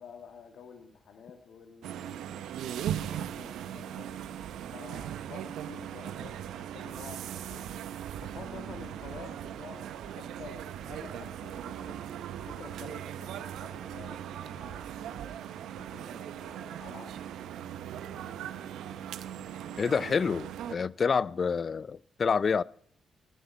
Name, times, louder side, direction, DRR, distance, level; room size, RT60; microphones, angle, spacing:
voice 1, 0.0-2.4 2.7-4.1 4.7-7.6 8.2-12.1 12.5-15.3 15.8-17.1 17.5-18.6 19.7-20.3 21.1-21.4, left 6 dB, 70° left, 1.7 m, -50 dB
sound 1, 1.8-20.8, right 10 dB, 80° right, 0.7 m, -39 dB
voice 2, 19.8-22.6, left 5 dB, 55° left, 0.4 m, -28 dB
17.0 x 9.9 x 4.4 m
hypercardioid pair, 45°, 0 cm